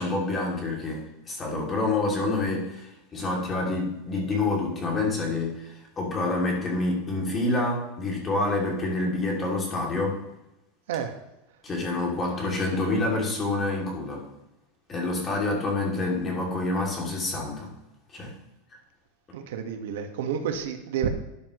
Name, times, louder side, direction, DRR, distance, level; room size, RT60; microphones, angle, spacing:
voice 1, 0.0-10.2 11.6-14.2 14.9-17.7 18.1-18.3, left 2 dB, 20° left, -1 dB, 2.7 m, -27 dB
voice 2, 19.3-21.1, right 8 dB, 80° right, 5 dB, 1.5 m, -30 dB
12.5 x 10.0 x 3.1 m, 0.93 s
supercardioid pair, 170°, 0 cm